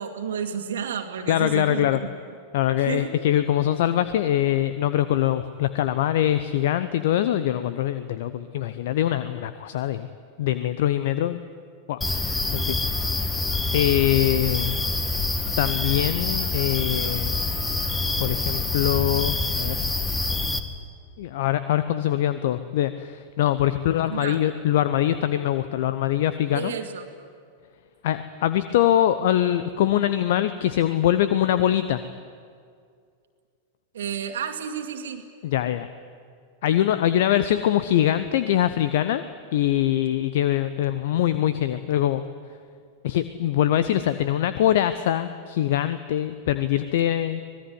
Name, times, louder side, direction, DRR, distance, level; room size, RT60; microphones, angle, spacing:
voice 1, 0.0-2.1 2.8-3.1 24.1-24.5 26.5-27.1 33.9-35.2, right 8 dB, 60° right, 4 dB, 2.0 m, -31 dB
voice 2, 1.3-2.0 2.5-10.1 10.4-11.4 11.9-12.0 12.3-12.7 13.7-14.8 15.6-17.4 18.2-19.8 21.2-26.7 28.0-32.0 35.4-35.9 36.6-39.2 39.5-42.2 43.0-47.4, left 12 dB, 55° left, 13 dB, 0.9 m, -23 dB
sound 1, 12.0-20.6, left 3 dB, 15° left, 1.9 m, -26 dB
25.5 x 19.5 x 9.7 m, 2.2 s
figure-of-eight pair, 90°, 0 cm